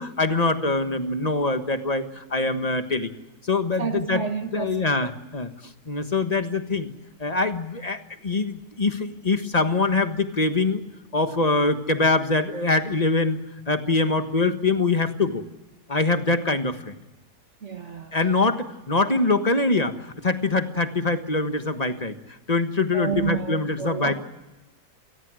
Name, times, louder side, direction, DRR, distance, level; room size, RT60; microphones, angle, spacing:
voice 1, 0.0-3.1 3.4-4.2 4.5-5.5 5.9-6.9 7.2-10.8 11.1-13.4 13.7-15.4 15.9-17.0 18.1-22.1 22.5-24.1, left 3 dB, 25° left, 1.4 m, -24 dB
voice 2, 3.8-5.1 17.6-18.2 22.9-24.1, right 5 dB, 45° right, 1.5 m, -30 dB
28.5 x 19.0 x 6.4 m
omnidirectional pair, 1.8 m